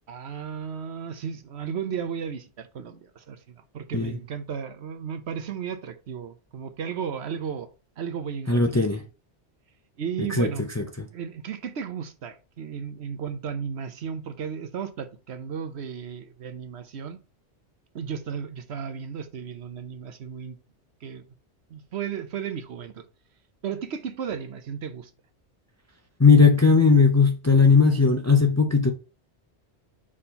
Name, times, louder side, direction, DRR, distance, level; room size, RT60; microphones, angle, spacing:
voice 1, 0.1-7.7 8.0-8.7 10.0-10.6 11.0-17.2 17.9-20.6 21.0-21.2 21.7-23.0 23.6-25.1, right 7 dB, 70° right, 1.0 m, -34 dB
voice 2, 8.5-9.0 10.2-10.5 10.8-10.9 26.2-28.9, left 4 dB, 20° left, 0.5 m, -18 dB
4.9 x 4.3 x 5.6 m
omnidirectional pair, 1.2 m